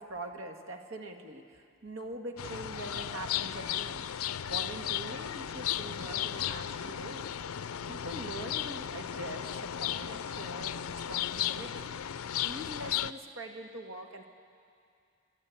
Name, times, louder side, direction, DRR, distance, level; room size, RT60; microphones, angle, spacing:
voice 1, 0.0-4.1 4.4-7.4 7.9-11.9 12.3-14.2, right 1 dB, 70° right, 4 dB, 1.8 m, -43 dB
sound 1, 2.4-13.1, left 10 dB, 85° left, 0.5 m, -35 dB
29.5 x 13.0 x 8.4 m, 2.4 s
head